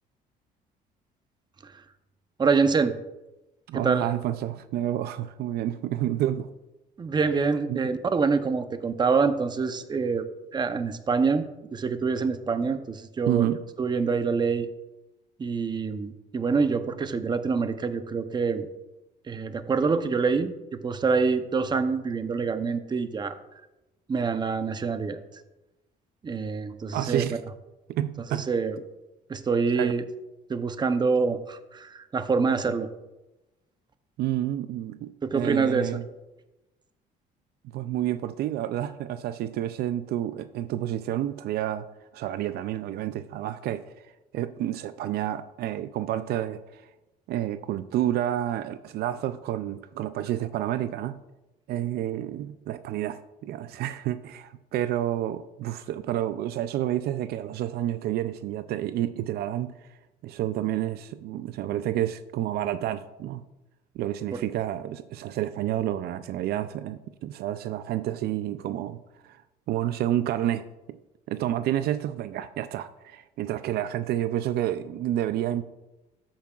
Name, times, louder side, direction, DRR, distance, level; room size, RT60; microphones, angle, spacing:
voice 1, 2.4-2.9 3.7-4.1 7.0-10.3 10.5-13.5 13.8-14.7 15.4-18.7 19.3-23.4 24.1-25.2 26.2-27.2 28.3-28.8 29.3-30.0 30.5-32.9 35.2-36.0 64.3-64.4, right 5 dB, 25° right, 9 dB, 0.7 m, -26 dB
voice 2, 3.7-6.5 7.7-7.8 13.3-13.6 26.9-27.4 27.9-28.5 29.7-29.9 34.2-36.0 37.7-41.9 42.1-43.9 44.3-46.9 47.3-51.2 51.7-59.8 60.2-63.4 63.9-69.4 69.7-71.0 71.3-75.6, right 12 dB, 70° right, 12 dB, 0.4 m, -29 dB
13.0 x 8.6 x 2.4 m, 1.0 s
cardioid pair, 110°, 17 cm